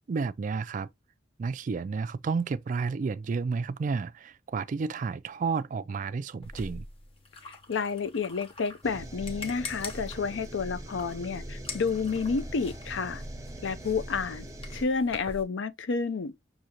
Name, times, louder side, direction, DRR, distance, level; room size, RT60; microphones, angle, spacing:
voice 1, 0.1-0.9 1.4-6.9 14.7-14.8, right 4 dB, 45° right, 0.3 m, -31 dB
sound 1, 6.4-15.4, left 3 dB, 30° left, 1.0 m, -45 dB
voice 2, 7.4-13.2 13.6-14.4 14.7-16.3, left 5 dB, 85° left, 0.5 m, -30 dB
sound 2, 8.8-14.8, right 1 dB, 20° right, 0.8 m, -41 dB
6.3 x 2.7 x 2.9 m
head